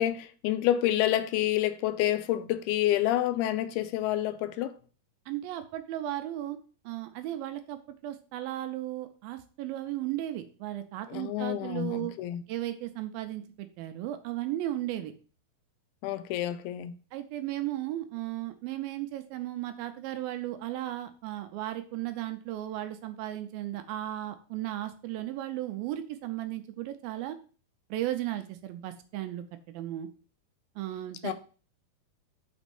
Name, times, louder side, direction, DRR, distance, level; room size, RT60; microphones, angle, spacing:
voice 1, 0.0-4.7 11.1-12.4 16.0-16.9 31.2-31.3, left 13 dB, 85° left, 2.5 m, -28 dB
voice 2, 5.3-6.6 6.9-12.1 12.5-15.1 17.1-27.4 27.9-30.1 30.8-31.3, right 14 dB, 80° right, 2.3 m, -35 dB
6.0 x 4.1 x 5.3 m
omnidirectional pair, 4.4 m